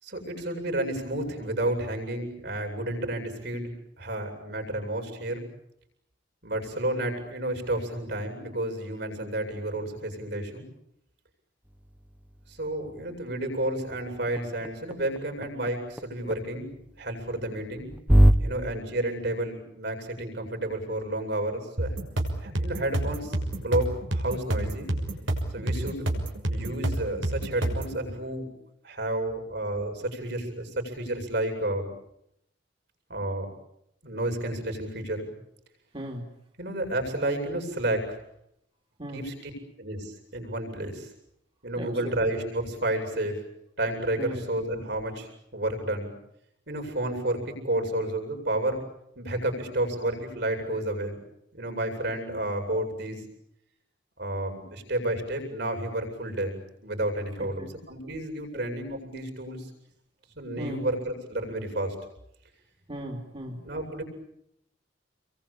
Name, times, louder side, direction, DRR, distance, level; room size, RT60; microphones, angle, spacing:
voice 1, 0.0-5.5 6.4-10.7 12.5-16.7 17.0-17.9 18.4-21.9 22.4-24.9 25.5-26.0 26.5-28.5 28.8-31.9 33.1-33.5 34.0-35.3 36.6-38.2 39.1-39.5 39.8-41.1 41.6-43.4 43.8-46.1 46.7-48.8 49.2-51.2 51.5-53.3 54.2-59.7 60.4-61.9 63.6-64.0, right 1 dB, 60° right, 5 dB, 8.0 m, -31 dB
sound 1, 11.6-18.3, equal, 5° right, 1.2 m, -27 dB
sound 2, 21.8-28.0, right 1 dB, 85° right, 6.2 m, -29 dB
voice 2, 41.8-42.1 44.2-44.4 57.4-57.7 58.5-58.6 60.6-60.8 62.9-63.7, equal, 30° right, 1 dB, 3.3 m, -37 dB
29.0 x 23.0 x 8.8 m, 0.78 s
head